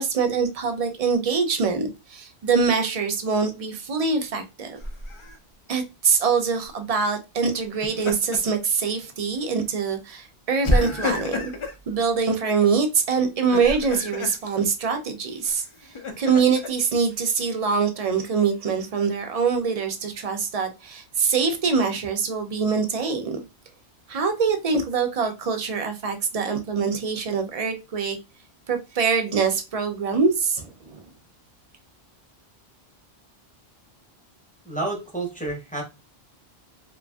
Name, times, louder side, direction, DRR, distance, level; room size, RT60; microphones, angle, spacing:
voice 1, 0.0-4.8 5.7-11.5 11.9-23.4 24.1-28.2 28.7-31.0, right 5 dB, 50° right, 0.5 m, -24 dB
Laughter, 4.8-5.4 7.6-8.6 9.0-9.2 10.6-11.8 13.3-14.4 15.4-16.7, left 2 dB, 45° left, 0.4 m, -28 dB
voice 2, 34.6-35.8, right 2 dB, 10° left, 0.7 m, -29 dB
2.9 x 2.5 x 2.2 m
omnidirectional pair, 1.0 m